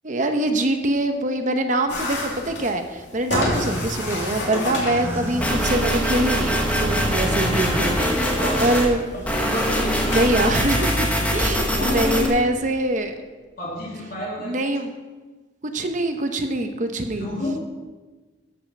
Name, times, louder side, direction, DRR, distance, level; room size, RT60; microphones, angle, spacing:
voice 1, 0.0-8.0 8.6-9.0 10.1-13.1 14.4-14.9 15.6-17.3, right 1 dB, 40° right, 6 dB, 0.8 m, -24 dB
sound 1, 1.9-11.1, left 1 dB, 65° left, 2.5 m, -32 dB
sound 2, 3.2-8.9, equal, 10° right, 2.4 m, -31 dB
sound 3, 5.4-8.9 9.2-12.3, equal, 10° left, 1.2 m, -23 dB
voice 2, 7.8-8.6 9.3-10.2 11.8-12.3 13.6-14.6 17.1-17.6, left 1 dB, 50° left, -5 dB, 3.0 m, -29 dB
13.0 x 5.6 x 6.0 m, 1.3 s
head